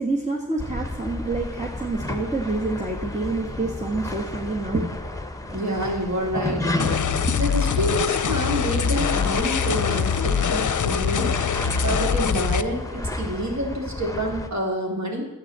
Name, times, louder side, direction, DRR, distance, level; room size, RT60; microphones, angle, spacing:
voice 1, 0.0-4.9 7.2-7.3, right 3 dB, 20° right, -1 dB, 1.6 m, -27 dB
sound 1, 0.6-14.5, left 2 dB, 10° left, 1.3 m, -32 dB
voice 2, 5.5-11.4 11.7-15.3, equal, 50° right, -1 dB, 3.4 m, -28 dB
sound 2, 6.8-12.6, left 7 dB, 55° left, 0.6 m, -23 dB
11.0 x 8.6 x 7.5 m, 1.1 s
cardioid pair, 50°, 35 cm